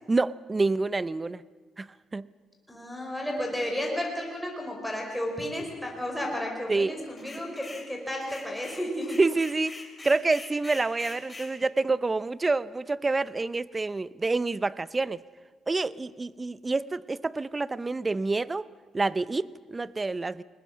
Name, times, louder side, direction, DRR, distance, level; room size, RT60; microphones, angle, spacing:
voice 1, 0.1-1.4 1.8-2.3 6.7-6.9 9.2-15.2 15.7-18.7 18.9-20.4, right 3 dB, 25° right, 18 dB, 0.7 m, -28 dB
voice 2, 2.7-9.2, left 1 dB, ahead, -1 dB, 5.0 m, -32 dB
sound 1, 7.2-7.9 8.2-11.5, left 3 dB, 20° left, 3.8 m, -44 dB
21.0 x 20.0 x 7.5 m, 1.5 s
cardioid pair, 90°, 0 cm